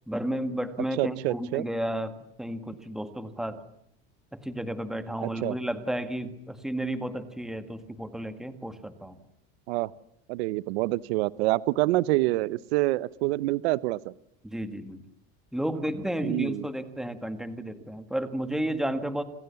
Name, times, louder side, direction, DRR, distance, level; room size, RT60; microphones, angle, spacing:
voice 1, 0.1-3.6 4.3-9.2 14.4-15.0 15.5-19.2, right 1 dB, ahead, 9 dB, 1.9 m, -32 dB
voice 2, 1.0-1.6 5.2-5.5 9.7-9.9 10.3-14.1 16.2-16.6, right 19 dB, 90° right, 18 dB, 1.0 m, -27 dB
29.5 x 27.5 x 7.1 m, 0.75 s
cardioid pair, 160°, 31 cm